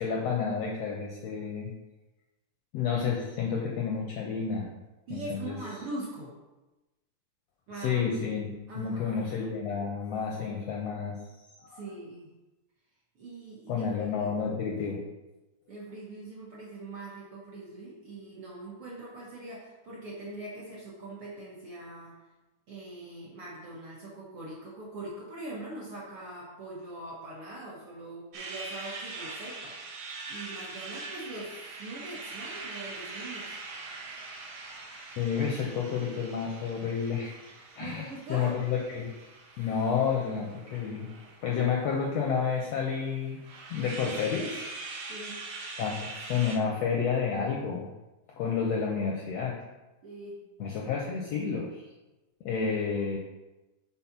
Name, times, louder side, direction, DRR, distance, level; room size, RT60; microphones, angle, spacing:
voice 1, 0.0-1.7 2.7-4.7 5.1-5.5 7.7-8.5 8.7-11.2 11.6-11.8 13.7-15.0 35.2-37.3 37.8-39.1 39.6-41.1 41.4-43.4 43.7-44.7 45.8-47.9 48.4-49.5 50.6-51.9 52.4-53.2, left 6 dB, 80° left, -1 dB, 1.5 m, -30 dB
voice 2, 5.1-6.3 7.7-8.1 8.7-9.2 11.7-12.3 13.2-13.9 14.2-14.3 15.7-22.2 22.7-30.0 30.3-33.6 37.8-38.5 45.0-45.4 50.0-50.4, right 2 dB, 60° right, -5 dB, 1.5 m, -42 dB
sound 1, 28.3-46.6, right 3 dB, 80° right, 1.1 m, -43 dB
5.7 x 4.2 x 5.8 m, 1.1 s
omnidirectional pair, 3.8 m